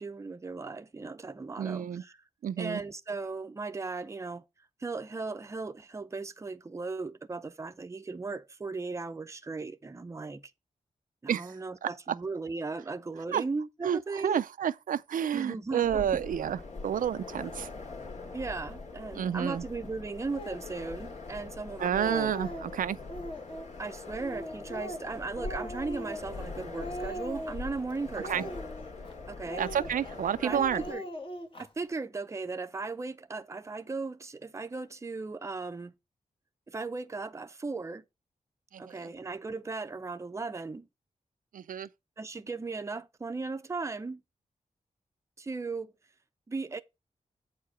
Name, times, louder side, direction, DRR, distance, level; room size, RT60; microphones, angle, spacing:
voice 1, 0.0-2.1 2.6-4.4 4.8-10.5 11.2-14.4 15.3-16.2 18.3-22.3 23.8-28.5 29.3-29.6 30.4-31.1 31.6-35.9 36.7-38.0 38.8-40.9 42.2-44.2 45.4-45.9 46.5-46.8, right 3 dB, 20° right, 0.6 m, -37 dB
voice 2, 1.6-2.0 2.4-2.8 11.3-11.6 11.8-12.2 13.3-13.4 13.8-17.7 19.1-19.6 21.8-23.0 28.2-28.4 29.6-30.8 38.7-39.1 41.5-41.9, right 9 dB, 85° right, 0.4 m, -30 dB
sound 1, 15.8-30.9, left 3 dB, 60° left, 2.3 m, -43 dB
Speech, 20.3-20.7 21.4-21.5 21.8-22.7 23.1-23.7 24.2-26.5 26.7-27.7 28.2-29.1 29.5-30.2 30.5-31.7, equal, 40° left, 1.5 m, -40 dB
8.4 x 4.8 x 5.4 m
wide cardioid pair, 160°, 14 cm